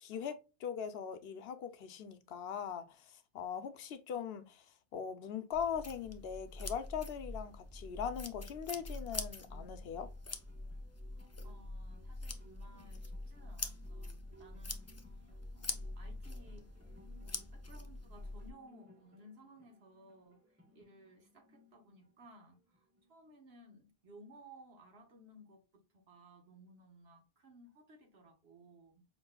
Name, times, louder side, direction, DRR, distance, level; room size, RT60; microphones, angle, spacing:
voice 1, 0.0-4.6 4.9-10.1, left 7 dB, 75° left, 0.9 m, -41 dB
sound 1, 5.5-18.5, left 2 dB, 25° left, 0.3 m, -45 dB
sound 2, 8.4-23.3, equal, 15° right, 1.4 m, -65 dB
voice 2, 11.1-14.9 15.2-16.7 17.2-25.6 25.9-29.0, right 1 dB, 80° right, 1.5 m, -59 dB
5.9 x 3.0 x 2.2 m
omnidirectional pair, 1.0 m